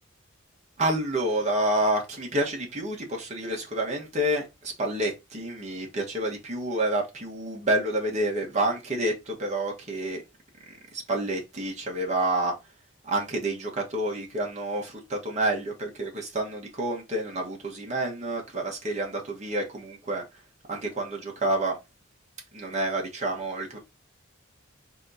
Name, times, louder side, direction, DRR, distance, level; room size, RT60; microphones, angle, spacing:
voice 1, 0.8-10.2 10.7-12.5 13.0-20.2 20.7-21.8 22.5-23.8, right 1 dB, 35° right, 1.4 m, -29 dB
4.1 x 3.0 x 4.0 m
head